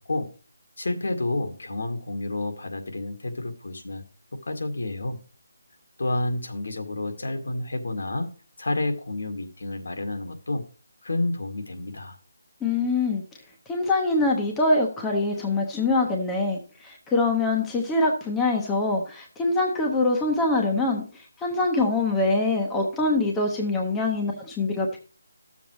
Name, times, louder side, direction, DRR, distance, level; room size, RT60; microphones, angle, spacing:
voice 1, 0.8-4.0 4.4-5.2 6.0-8.3 8.6-10.6 11.0-12.2, left 2 dB, 70° left, 5 dB, 1.9 m, -29 dB
voice 2, 12.6-13.2 13.7-25.0, left 2 dB, 5° left, 0 dB, 0.8 m, -24 dB
13.0 x 7.1 x 3.2 m, 0.37 s
hypercardioid pair, 175°, 0 cm